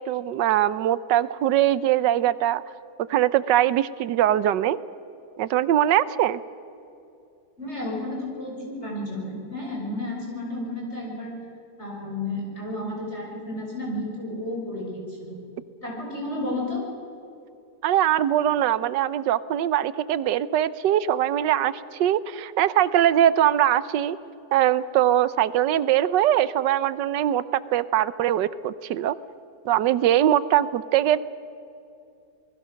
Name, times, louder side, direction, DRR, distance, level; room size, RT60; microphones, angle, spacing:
voice 1, 0.0-2.6 3.1-4.8 5.4-6.4 17.8-24.2 24.5-29.2 29.6-31.2, right 11 dB, 90° right, 16 dB, 1.4 m, -22 dB
voice 2, 7.6-11.3 11.8-15.3 15.8-16.8, left 1 dB, 40° left, -1 dB, 6.7 m, -32 dB
27.5 x 20.0 x 6.4 m, 2.7 s
omnidirectional pair, 1.8 m